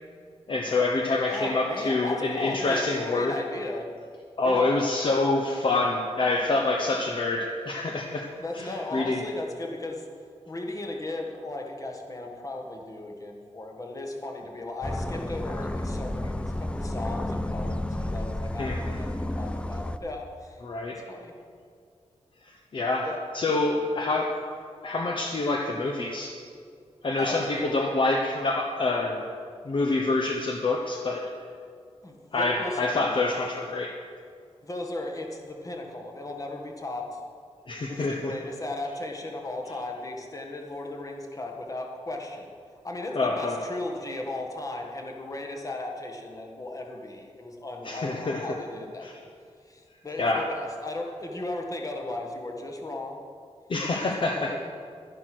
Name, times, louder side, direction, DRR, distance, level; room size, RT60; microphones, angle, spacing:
voice 1, 0.5-3.4 4.4-8.3 8.5-9.2 18.6-19.0 20.6-21.0 22.4-23.1 23.3-24.3 24.8-26.3 27.0-29.2 29.6-31.3 32.3-34.0 37.7-38.3 43.1-43.6 47.8-48.4 49.0-49.1 50.2-50.5 53.7-54.5, left 2 dB, 50° left, 1 dB, 1.0 m, -26 dB
voice 2, 1.3-3.9 4.4-4.8 8.4-10.1 10.5-20.6 20.9-21.3 23.0-23.2 27.2-27.7 32.0-33.2 34.6-37.2 37.9-42.5 42.8-49.2 49.6-53.2 54.1-54.5, left 2 dB, 30° left, 1 dB, 1.7 m, -36 dB
sound 1, 14.8-20.0, left 1 dB, 10° left, 0.5 m, -31 dB
11.0 x 11.0 x 6.2 m, 2.2 s
wide cardioid pair, 130°, 11 cm